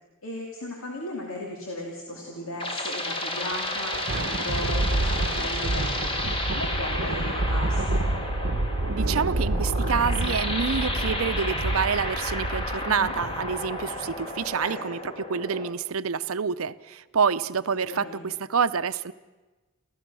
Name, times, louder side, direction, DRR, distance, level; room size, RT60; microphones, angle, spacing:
voice 1, 0.2-8.0 12.9-13.1 14.6-14.9 17.9-18.2, left 1 dB, 65° left, -1 dB, 2.6 m, -36 dB
sound 1, 2.1-15.7, left 1 dB, 25° left, 1.9 m, -32 dB
Thunder, 3.5-14.2, right 2 dB, 55° right, 0.9 m, -28 dB
voice 2, 8.9-19.1, right 6 dB, 80° right, 13 dB, 0.7 m, -27 dB
28.0 x 15.0 x 6.2 m, 1.2 s
head